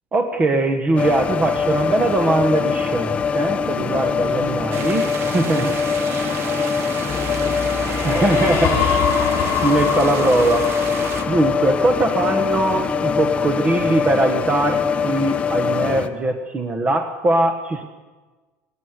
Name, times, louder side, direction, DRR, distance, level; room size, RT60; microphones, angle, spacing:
voice 1, 0.1-5.1 5.3-5.7 8.0-8.8 9.6-10.9 11.3-17.8, right 2 dB, 20° right, 6 dB, 1.3 m, -21 dB
sound 1, 1.0-16.1, left 6 dB, 20° left, 0.9 m, -23 dB
voice 2, 3.7-9.6, right 5 dB, 70° right, 3 dB, 4.8 m, -38 dB
sound 2, 4.7-11.2, right 7 dB, 40° right, 1.1 m, -33 dB
sound 3, 7.1-13.0, left 7 dB, 45° left, 4.7 m, -26 dB
20.0 x 15.5 x 9.7 m, 1.3 s
cardioid pair, 150°, 6 cm